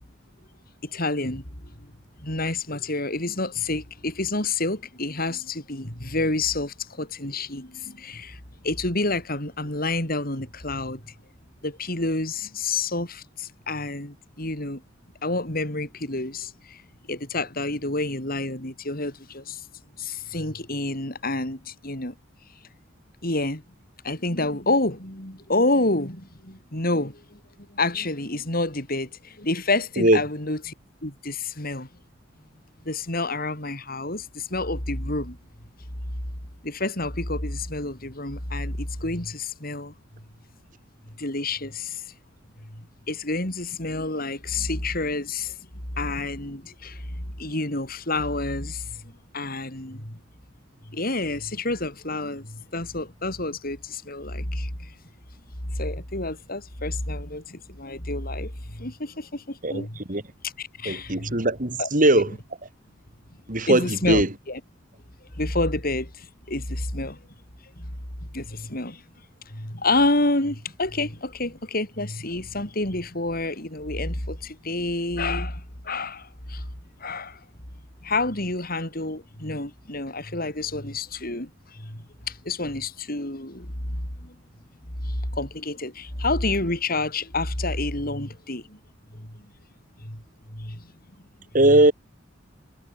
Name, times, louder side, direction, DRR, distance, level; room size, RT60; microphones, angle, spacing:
voice 1, 0.9-1.4 1.8-1.9 2.2-11.0 11.6-14.8 15.2-16.8 17.1-19.6 20.0-22.1 23.2-23.6 24.0-27.4 27.7-30.7 31.0-31.9 32.8-35.4 36.6-39.9 41.2-42.0 42.6-45.6 46.0-50.2 50.9-54.9 55.6-60.0 60.4-61.4 61.8-61.9 62.2-62.3 63.7-64.6 65.4-67.2 67.8-68.0 68.3-69.0 69.5-76.7 77.0-77.4 78.0-84.3 85.0-88.8 89.1-89.4 90.0-90.2 90.5-90.9, left 2 dB, 50° left, 6.9 m, -29 dB
voice 2, 59.6-60.2 60.9-62.4 63.5-64.3 91.5-91.9, right 1 dB, 45° right, 3.7 m, -20 dB
head